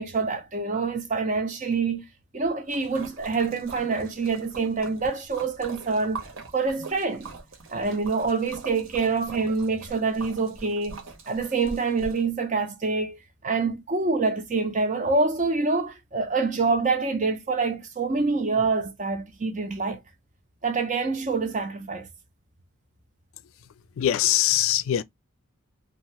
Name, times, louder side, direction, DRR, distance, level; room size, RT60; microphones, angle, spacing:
voice 1, 0.0-2.1 2.3-6.2 6.5-7.3 7.7-13.2 13.4-20.0 20.6-22.1, right 4 dB, 35° right, 0.5 m, -26 dB
Splash splatter, 2.7-12.2, right 3 dB, 70° right, 0.8 m, -43 dB
voice 2, 24.0-25.0, left 13 dB, 75° left, 0.3 m, -22 dB
2.7 x 2.4 x 3.0 m
head